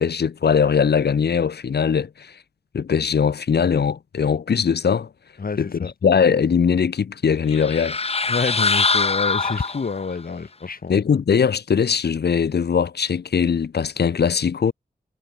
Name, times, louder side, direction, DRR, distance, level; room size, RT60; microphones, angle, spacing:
voice 1, 0.0-2.3 2.7-5.1 5.6-8.0 10.9-14.7, left 6 dB, 80° left, 1.0 m, -20 dB
voice 2, 5.4-5.9 8.3-10.9, left 4 dB, 60° left, 3.0 m, -28 dB
sound 1, 7.5-10.1, left 4 dB, 35° left, 0.9 m, -23 dB
wide cardioid pair, 105°, 17 cm